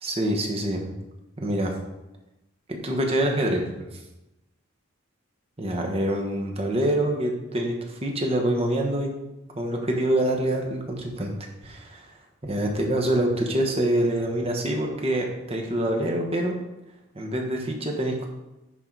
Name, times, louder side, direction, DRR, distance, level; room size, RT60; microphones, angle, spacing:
voice 1, 0.0-0.9 1.4-1.7 2.7-3.9 5.6-9.2 9.5-11.3 11.6-12.1 12.4-16.6 17.1-18.3, right 1 dB, 30° right, 1 dB, 1.1 m, -25 dB
9.8 x 3.9 x 4.7 m, 0.98 s
head